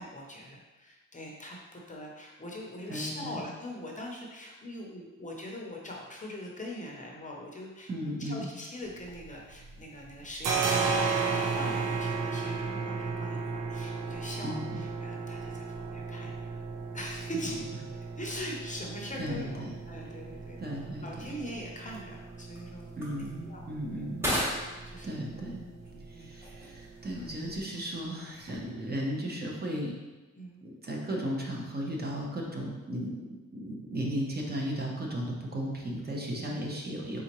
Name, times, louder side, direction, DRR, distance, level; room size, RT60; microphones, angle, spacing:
voice 1, 0.0-7.9 8.2-16.6 16.9-17.6 17.9-20.6 21.0-22.9 23.4-23.7 24.8-25.3 25.9-26.3 30.4-30.6 36.4-36.5, equal, 25° left, -1 dB, 0.6 m, -42 dB
voice 2, 2.9-3.4 7.9-8.5 14.4-14.8 17.3-17.4 19.2-19.7 20.6-21.3 23.0-24.3 25.0-25.6 26.1-30.0 30.6-33.2 33.5-37.2, equal, 30° right, -1 dB, 0.7 m, -35 dB
sound 1, 8.9-9.8 10.0-27.6, right 4 dB, 85° right, 0.6 m, -35 dB
sound 2, 19.9-29.1, equal, 10° right, 1.0 m, -40 dB
4.1 x 3.6 x 3.0 m, 1.2 s
wide cardioid pair, 130°, 31 cm